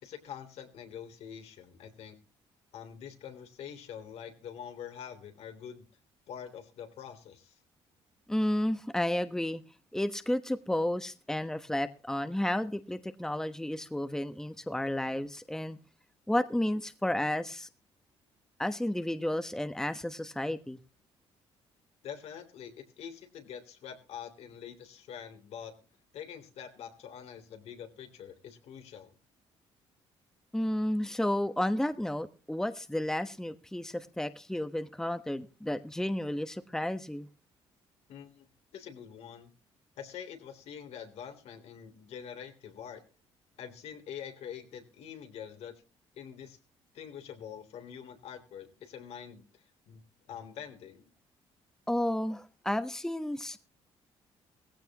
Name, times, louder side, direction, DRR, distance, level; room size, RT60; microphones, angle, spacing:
voice 1, 0.0-2.2 2.7-5.9 6.3-7.6 22.0-25.7 26.1-29.2 38.1-39.5 40.0-43.0 43.6-45.7 46.1-46.6 46.9-50.0 50.3-51.1, left 8 dB, 75° left, 6 dB, 3.3 m, -45 dB
voice 2, 8.3-9.6 9.9-15.8 16.3-17.7 18.6-20.8 30.5-37.3 51.9-53.6, left 1 dB, 5° left, 10 dB, 1.2 m, -32 dB
17.5 x 15.5 x 3.0 m, 0.34 s
cardioid pair, 85°, 11 cm